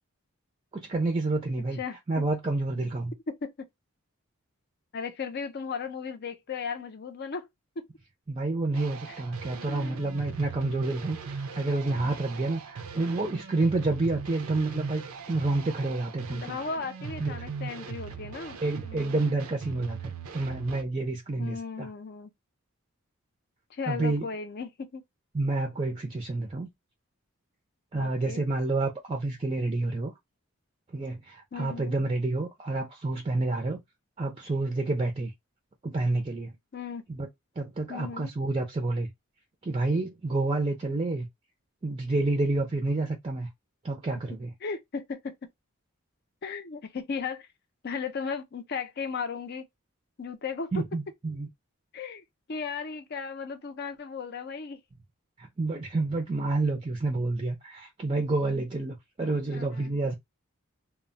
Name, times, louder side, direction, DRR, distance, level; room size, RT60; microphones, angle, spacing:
voice 1, 0.7-1.8 2.1-3.1 8.3-16.6 17.0-17.4 18.6-21.9 23.9-24.3 25.3-26.7 27.9-30.1 30.9-33.8 34.2-35.3 35.8-36.5 37.1-37.3 37.6-39.1 39.6-41.3 41.8-43.5 43.8-44.5 50.7-51.5 55.4-60.1, right 2 dB, 25° right, 0.4 m, -29 dB
voice 2, 1.8-2.2 3.3-3.7 4.9-7.5 7.8-7.9 9.1-9.2 9.7-10.1 16.3-19.3 21.4-22.3 23.7-25.0 28.0-28.4 31.5-32.0 36.7-37.0 37.9-38.3 44.6-45.3 46.4-47.5 47.8-49.7 50.2-50.8 51.9-54.8 59.5-59.9, left 5 dB, 50° left, 0.5 m, -36 dB
sound 1, 8.7-20.8, right 5 dB, 80° right, 0.5 m, -40 dB
2.1 x 2.0 x 3.7 m
head